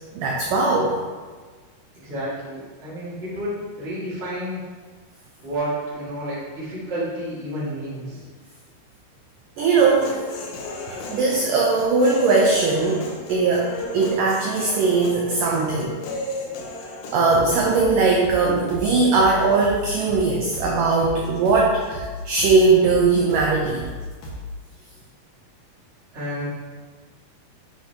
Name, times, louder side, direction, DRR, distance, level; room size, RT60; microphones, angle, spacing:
voice 1, 0.1-1.0 9.6-10.2 10.9-16.0 17.1-23.9, right 3 dB, 80° right, -2 dB, 1.9 m, -20 dB
voice 2, 1.9-4.6 5.4-8.2 26.1-26.5, right 1 dB, 30° right, -9 dB, 1.2 m, -30 dB
Human voice, 9.6-17.6, left 1 dB, 90° left, 2.9 m, -34 dB
sound 1, 17.3-24.5, left 1 dB, 65° left, 1.4 m, -35 dB
8.8 x 5.5 x 2.9 m, 1.4 s
omnidirectional pair, 4.7 m